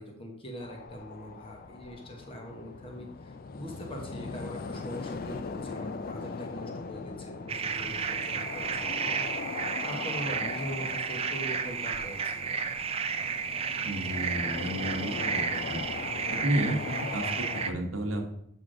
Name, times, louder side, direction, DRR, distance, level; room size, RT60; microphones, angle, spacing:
voice 1, 0.0-9.5 9.8-12.7, equal, 25° left, 1 dB, 1.1 m, -42 dB
sound 1, 0.6-17.7, left 4 dB, 45° left, 0.4 m, -40 dB
sound 2, 7.5-17.7, right 6 dB, 30° right, 0.4 m, -32 dB
voice 2, 13.8-15.4 15.7-15.8 16.3-18.3, right 1 dB, 70° right, 2 dB, 1.0 m, -32 dB
7.7 x 3.6 x 4.9 m, 0.75 s
head